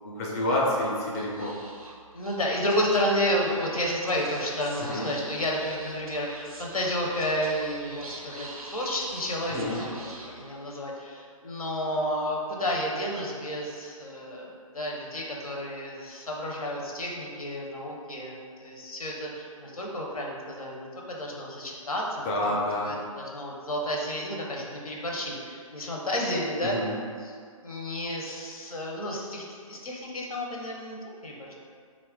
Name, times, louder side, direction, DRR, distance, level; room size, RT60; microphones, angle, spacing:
voice 1, 0.0-1.5 4.8-5.1 9.5-9.8 22.2-22.9 26.6-26.9, left 1 dB, 25° left, -3 dB, 0.4 m, -28 dB
Speech / Whispering, 1.1-10.9, right 2 dB, 85° right, 0.5 m, -45 dB
voice 2, 2.1-22.5 22.8-26.7 27.2-27.4 27.6-31.5, equal, 85° left, -2 dB, 0.6 m, -31 dB
2.3 x 2.1 x 3.6 m, 2.1 s
figure-of-eight pair, 130°, 18 cm